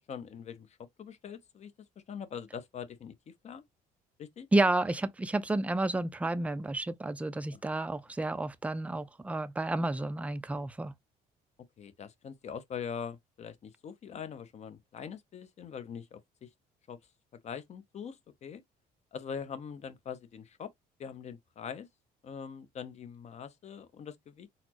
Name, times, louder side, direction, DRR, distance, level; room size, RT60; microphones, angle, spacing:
voice 1, 0.0-1.7 2.1-3.6 4.2-4.5 7.5-7.6 11.8-16.5 16.9-17.0 17.4-18.6 19.1-20.7 21.0-21.9 22.2-24.5, left 7 dB, 40° left, 0.6 m, -43 dB
voice 2, 4.5-10.9, right 2 dB, 10° right, 0.3 m, -30 dB
4.0 x 2.0 x 2.8 m
cardioid pair, 110°, 17 cm